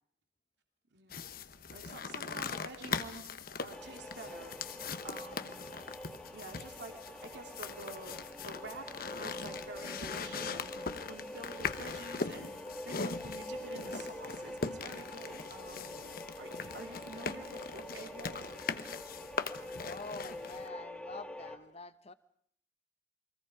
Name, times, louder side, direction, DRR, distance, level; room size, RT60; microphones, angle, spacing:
voice 1, 0.9-1.3 1.7-3.3 3.6-5.7 6.3-8.2 8.4-12.5 12.8-15.9 16.4-18.5, right 2 dB, 75° right, 3 dB, 3.0 m, -48 dB
sound 1, 1.1-20.7, left 5 dB, 55° left, 1.0 m, -41 dB
sound 2, 3.7-21.6, left 1 dB, 5° left, 1.8 m, -46 dB
voice 2, 19.8-22.1, left 4 dB, 35° left, 14 dB, 0.9 m, -46 dB
29.0 x 22.5 x 4.9 m, 0.66 s
head